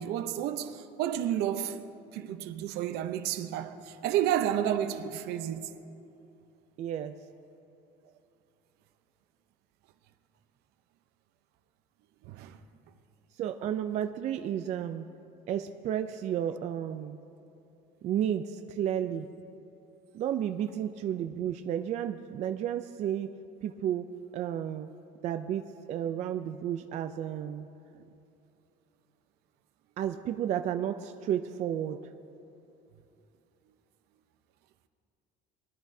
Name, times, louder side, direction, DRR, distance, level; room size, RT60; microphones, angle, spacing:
voice 1, 0.0-1.8 2.1-5.7 12.2-12.6, right 11 dB, 70° right, 0.7 m, -31 dB
voice 2, 6.8-7.1 13.4-15.0 15.5-17.2 18.0-19.3 20.1-23.3 23.6-24.0 24.3-24.9 25.2-27.7 27.9-28.0 30.0-32.0, right 10 dB, 40° right, 0.4 m, -32 dB
22.5 x 10.5 x 2.7 m
cardioid pair, 155°, 18 cm